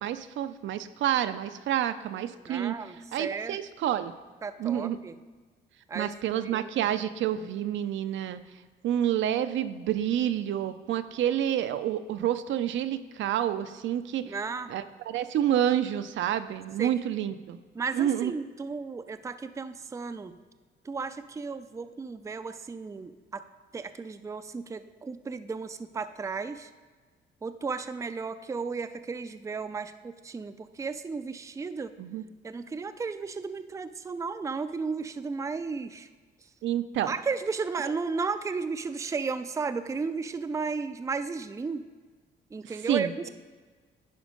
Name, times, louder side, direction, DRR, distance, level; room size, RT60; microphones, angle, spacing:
voice 1, 0.0-2.7 3.1-4.1 4.6-5.0 5.9-8.4 8.8-14.3 14.7-17.6 17.9-18.3 32.0-32.2 36.6-37.1 42.9-43.3, right 11 dB, 70° right, 11 dB, 0.5 m, -28 dB
voice 2, 2.5-3.6 4.4-5.2 5.9-6.9 14.2-14.7 16.8-16.9 17.7-20.4 20.8-23.4 23.7-26.7 27.4-31.9 32.4-36.1 37.1-41.8 42.5-43.3, right 4 dB, 15° right, 11 dB, 0.4 m, -34 dB
10.5 x 4.5 x 5.1 m, 1.4 s
cardioid pair, 90°, 20 cm